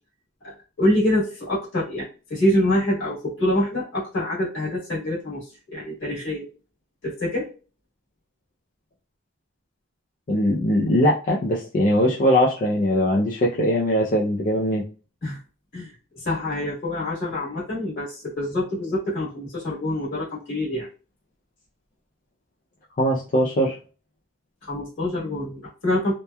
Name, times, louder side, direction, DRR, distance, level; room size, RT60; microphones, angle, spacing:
voice 1, 0.4-6.5 7.0-7.5 15.2-15.4 15.7-20.9 24.6-26.1, left 1 dB, 60° left, -7 dB, 1.3 m, -26 dB
voice 2, 10.3-14.8 23.0-23.8, equal, 40° left, -4 dB, 0.4 m, -21 dB
2.9 x 2.1 x 2.2 m, 0.35 s
head